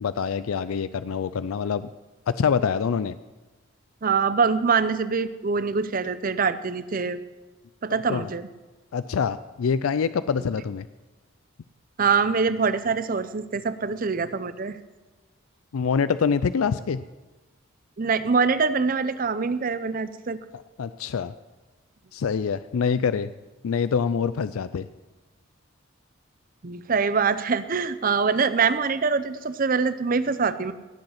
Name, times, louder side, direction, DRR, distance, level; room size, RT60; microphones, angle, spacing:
voice 1, 0.0-1.9 2.3-3.2 8.1-8.3 8.9-10.9 15.7-17.0 20.5-21.3 22.1-23.3 23.6-24.9, left 6 dB, 85° left, 14 dB, 0.4 m, -25 dB
voice 2, 4.0-7.2 7.8-8.5 12.0-14.8 18.0-20.4 26.6-30.7, right 5 dB, 40° right, 14 dB, 0.6 m, -24 dB
17.5 x 7.9 x 5.8 m, 1.2 s
head